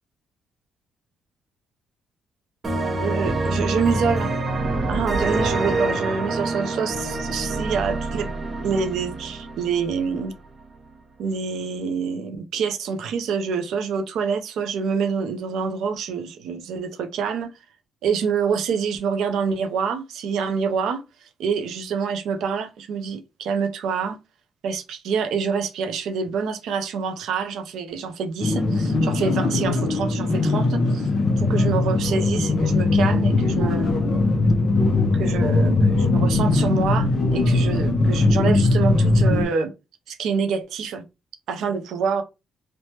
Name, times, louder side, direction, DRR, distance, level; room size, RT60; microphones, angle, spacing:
sound 1, 2.6-10.3, right 2 dB, 25° right, 0.5 m, -26 dB
voice 1, 3.0-4.3 4.9-8.3 8.6-10.3 11.2-17.5 18.0-24.2 24.6-31.1 31.4-34.2 35.1-39.7 40.1-41.0 41.5-42.2, right 6 dB, 75° right, 0.4 m, -26 dB
sound 2, 28.4-39.4, left 2 dB, 30° left, 0.5 m, -20 dB
3.1 x 2.1 x 2.8 m
cardioid pair, 150°, 0 cm